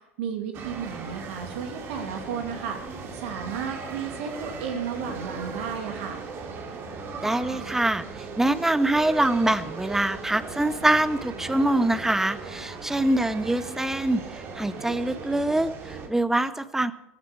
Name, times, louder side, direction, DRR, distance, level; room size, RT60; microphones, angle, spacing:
voice 1, 0.2-6.2, right 7 dB, 55° right, 4 dB, 2.4 m, -33 dB
sound 1, 0.5-16.1, right 4 dB, 35° right, 2.6 m, -38 dB
voice 2, 7.2-8.0 8.4-16.9, right 1 dB, 5° right, 14 dB, 0.7 m, -24 dB
15.0 x 14.5 x 4.6 m, 0.86 s
figure-of-eight pair, 80°, 7 cm